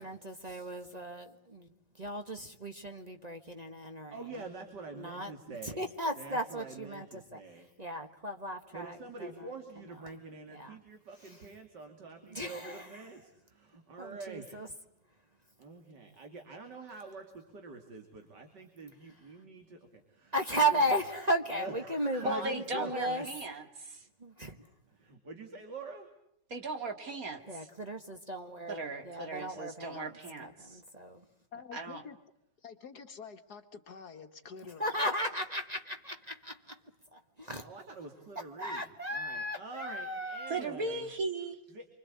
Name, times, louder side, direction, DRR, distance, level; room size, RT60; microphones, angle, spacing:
voice 1, 0.0-1.7 2.0-4.1 4.9-5.3 5.6-7.1 7.3-7.4 7.8-9.5 10.0-10.2 10.5-10.8 12.3-12.9 14.0-14.7 20.3-23.3 24.2-24.6 27.5-30.1 30.4-31.2 34.8-36.8 37.1-37.7 38.6-40.6, right 1 dB, 25° right, 6 dB, 1.2 m, -35 dB
voice 2, 4.1-5.8 6.2-7.7 8.7-14.6 15.6-21.0 21.5-23.2 24.9-26.1 37.6-41.1 41.7-41.9, right 3 dB, 65° right, 4 dB, 3.1 m, -46 dB
voice 3, 22.2-24.0 26.5-27.7 28.7-30.8 31.7-32.0 40.5-41.6, right 2 dB, 50° right, 6 dB, 2.6 m, -37 dB
voice 4, 31.5-32.2 32.6-35.1, left 6 dB, 60° left, 5 dB, 1.8 m, -48 dB
27.0 x 25.0 x 8.4 m, 0.76 s
omnidirectional pair, 2.0 m